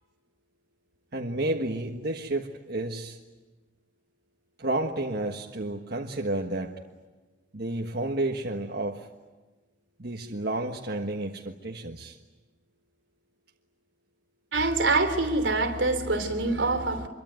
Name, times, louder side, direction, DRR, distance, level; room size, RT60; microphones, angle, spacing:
voice 1, 1.1-3.2 4.6-6.7 7.5-9.1 10.0-12.2, right 2 dB, 55° right, 0 dB, 1.5 m, -31 dB
voice 2, 14.5-17.1, right 3 dB, 80° right, 7 dB, 3.1 m, -25 dB
25.5 x 24.0 x 9.2 m, 1.2 s
head